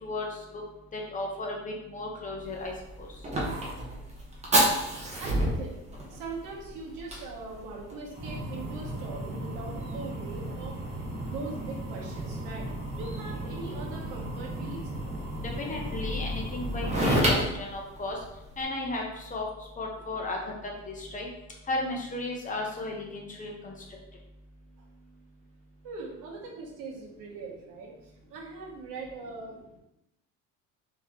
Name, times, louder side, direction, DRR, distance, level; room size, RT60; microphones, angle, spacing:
voice 1, 0.0-0.4 0.9-2.7 3.0-3.1 15.6-18.2 18.6-19.5 19.8-21.3 21.7-23.7, left 2 dB, 25° left, -1 dB, 0.8 m, -34 dB
Fire, 2.4-18.6, right 1 dB, 20° right, 1.0 m, -32 dB
voice 2, 5.2-5.7 6.1-10.8 11.2-12.7 13.0-14.8 25.8-29.8, right 3 dB, 70° right, -1 dB, 1.3 m, -41 dB
4.0 x 3.2 x 3.6 m, 0.88 s
cardioid pair, 145°, 32 cm